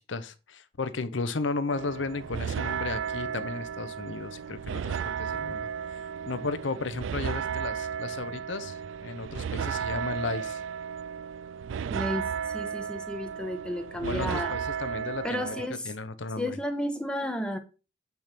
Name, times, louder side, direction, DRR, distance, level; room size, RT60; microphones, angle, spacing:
voice 1, 0.0-8.8 9.0-10.6 14.0-16.6, left 3 dB, 70° left, 0.8 m, -34 dB
sound 1, 1.7-15.7, right 7 dB, 75° right, 0.3 m, -34 dB
voice 2, 11.9-14.5 15.2-15.9 16.4-17.6, left 1 dB, 5° left, 1.2 m, -32 dB
9.3 x 3.5 x 5.8 m
head